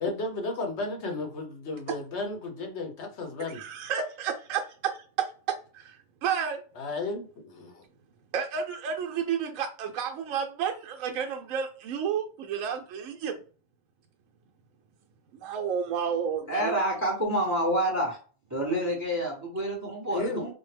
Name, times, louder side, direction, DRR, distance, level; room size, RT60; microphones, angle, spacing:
voice 1, 0.0-3.6 6.8-7.8 20.1-20.4, left 3 dB, 60° left, 3 dB, 1.1 m, -33 dB
voice 2, 3.5-5.3 5.7-6.6 8.3-13.4 15.3-16.7, right 7 dB, 75° right, 2 dB, 0.9 m, -31 dB
voice 3, 16.5-18.2 18.5-20.5, right 1 dB, 15° right, 0 dB, 0.8 m, -28 dB
4.3 x 2.0 x 3.2 m, 0.38 s
omnidirectional pair, 1.4 m